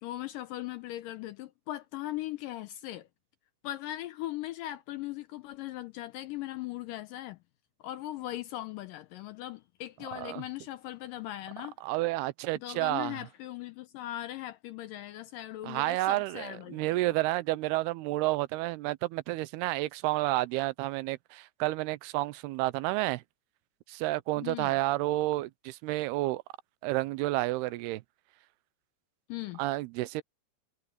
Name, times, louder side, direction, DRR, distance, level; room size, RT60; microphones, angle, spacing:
voice 1, 0.0-3.1 3.6-7.4 7.8-11.8 12.6-17.1 24.4-24.7 29.3-29.6, left 15 dB, 80° left, 2.0 m, -39 dB
voice 2, 11.8-13.3 15.6-23.2 23.9-26.4 26.8-28.0 29.6-30.2, right 18 dB, 90° right, 2.7 m, -30 dB
omnidirectional pair, 4.5 m